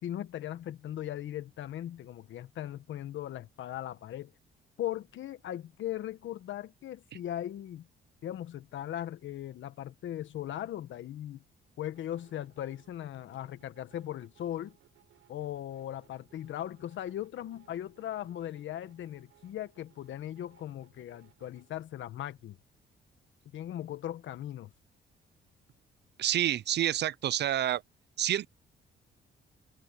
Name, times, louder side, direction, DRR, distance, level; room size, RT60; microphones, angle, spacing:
voice 1, 0.0-4.3 4.8-7.9 8.2-11.4 11.8-14.8 15.3-22.6 23.5-24.7, left 12 dB, 75° left, 1.4 m, -38 dB
sound 1, 11.8-21.8, right 13 dB, 80° right, 6.2 m, -65 dB
voice 2, 26.2-27.8 28.2-28.5, right 11 dB, 60° right, 0.6 m, -28 dB
cardioid pair, 90°, 20 cm